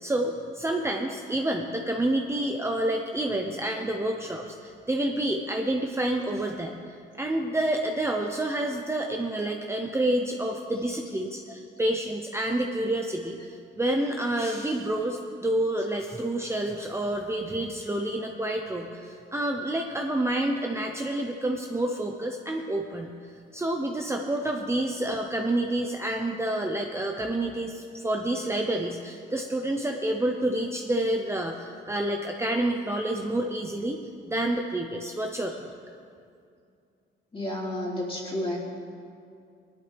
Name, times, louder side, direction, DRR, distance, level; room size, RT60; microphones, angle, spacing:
voice 1, 0.0-6.7 7.2-35.7, right 1 dB, 15° right, 2 dB, 0.8 m, -28 dB
voice 2, 37.3-38.6, left 1 dB, 30° left, -3 dB, 3.1 m, -31 dB
18.0 x 11.5 x 3.5 m, 2.4 s
cardioid pair, 90°, 20 cm